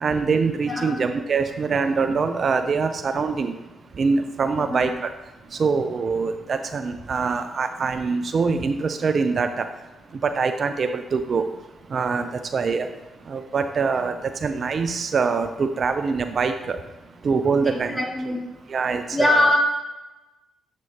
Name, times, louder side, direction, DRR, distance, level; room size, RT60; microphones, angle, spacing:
voice 1, 0.0-3.5 4.0-4.9 5.6-9.7 10.2-11.4 11.9-12.9 13.3-16.8 17.2-18.0 18.7-19.5, right 5 dB, 55° right, 8 dB, 0.4 m, -24 dB
voice 2, 0.7-1.0 4.6-4.9 13.9-14.1 17.9-18.4 19.1-19.6, left 1 dB, 20° left, -3 dB, 2.4 m, -22 dB
7.4 x 6.1 x 2.8 m, 1.1 s
hypercardioid pair, 45°, 0 cm